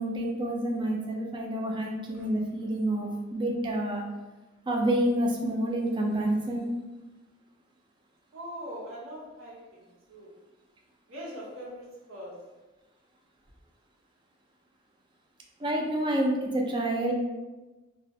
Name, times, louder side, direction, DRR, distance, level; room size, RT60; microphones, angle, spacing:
voice 1, 0.0-4.0 4.7-6.6 15.6-17.1, right 1 dB, 25° right, 1 dB, 0.3 m, -28 dB
voice 2, 8.3-9.8 10.1-10.3 11.1-12.4, equal, 90° right, -6 dB, 0.8 m, -41 dB
2.3 x 2.1 x 2.6 m, 1.2 s
head